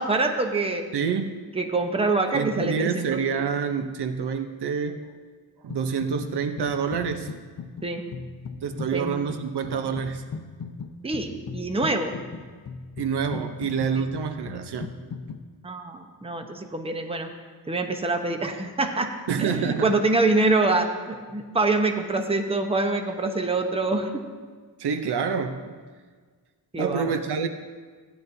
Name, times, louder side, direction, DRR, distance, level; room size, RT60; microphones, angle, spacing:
voice 1, 0.0-0.8 1.5-3.2 7.8-8.0 8.9-9.2 11.0-12.2 13.9-14.0 15.6-17.3 17.7-19.1 19.4-24.2 26.7-27.1, right 3 dB, 15° right, 5 dB, 0.8 m, -25 dB
voice 2, 0.9-1.4 2.3-5.1 5.6-7.3 8.6-10.3 13.0-15.0 19.3-20.0 24.8-25.8 26.8-27.5, right 6 dB, 65° right, 8 dB, 0.8 m, -27 dB
sound 1, 5.7-6.3 6.6-15.4, left 5 dB, 50° left, 0.7 m, -38 dB
16.0 x 10.0 x 2.7 m, 1.5 s
wide cardioid pair, 115°, 43 cm